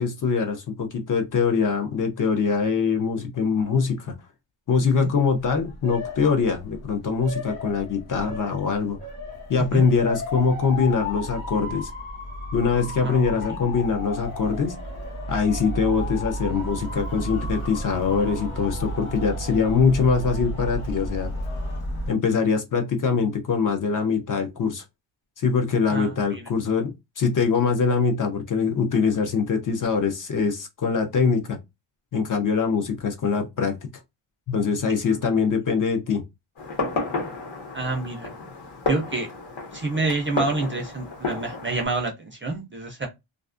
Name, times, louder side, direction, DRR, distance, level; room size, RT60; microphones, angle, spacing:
voice 1, 0.0-4.1 4.7-9.0 9.5-11.9 12.5-14.8 15.3-21.3 22.1-24.8 25.4-31.6 32.1-33.8 34.5-36.2, left 5 dB, 40° left, 0.4 m, -23 dB
Motor vehicle (road) / Siren, 5.3-22.1, equal, 85° left, 1.2 m, -33 dB
voice 2, 13.0-13.6 25.9-26.4 37.7-38.3 38.9-39.3 39.7-43.1, right 3 dB, 30° right, 0.3 m, -28 dB
Male singing / Female singing / Musical instrument, 14.1-21.8, left 3 dB, 25° left, 0.9 m, -46 dB
Fireworks, 36.6-41.8, left 2 dB, 65° left, 1.1 m, -31 dB
2.4 x 2.3 x 2.4 m
wide cardioid pair, 175°, 49 cm